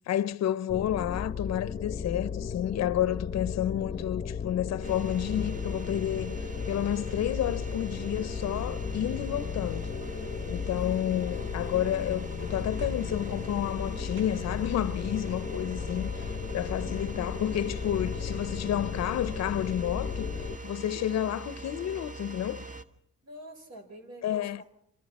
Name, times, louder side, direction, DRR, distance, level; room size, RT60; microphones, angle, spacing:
voice 1, 0.1-6.4 6.7-9.9 10.5-20.3 20.6-22.6 24.2-24.6, left 11 dB, 60° left, 0.7 m, -30 dB
sound 1, 0.7-20.6, left 6 dB, 25° left, 0.8 m, -35 dB
sound 2, 4.8-22.8, right 3 dB, 25° right, 1.3 m, -42 dB
sound 3, 12.8-17.9, right 1 dB, 40° right, 1.9 m, -52 dB
voice 2, 23.2-24.6, right 1 dB, 60° right, 5.5 m, -47 dB
26.5 x 26.5 x 4.2 m
cardioid pair, 90°, 30 cm